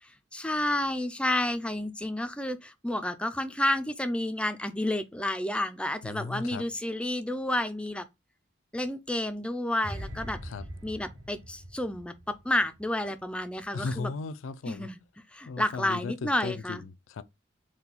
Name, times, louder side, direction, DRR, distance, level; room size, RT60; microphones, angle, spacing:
voice 1, 0.0-8.0 8.7-10.4 10.8-14.1 14.7-15.0 15.3-16.8, left 1 dB, 5° left, 0.4 m, -30 dB
voice 2, 6.0-6.6 10.4-10.6 13.7-14.9 15.5-16.8 17.1-17.2, left 4 dB, 85° left, 0.4 m, -36 dB
sound 1, 9.8-13.0 13.3-13.6, equal, 75° right, 1.1 m, -42 dB
4.3 x 2.3 x 3.9 m
head